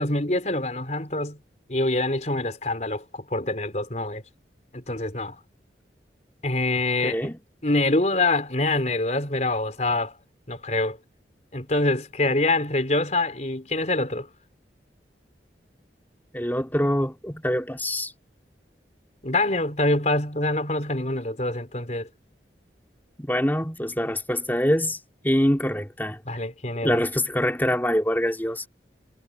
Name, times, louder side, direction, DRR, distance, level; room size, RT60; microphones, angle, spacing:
voice 1, 0.0-1.4 1.7-4.2 4.7-5.3 6.4-7.3 7.6-10.1 10.5-11.0 11.5-14.3 19.2-22.1 26.3-27.0, left 2 dB, 40° left, 4.3 m, -25 dB
voice 2, 7.0-7.4 16.3-18.1 23.2-25.0 25.2-26.2 26.8-28.7, equal, 10° left, 3.7 m, -24 dB
head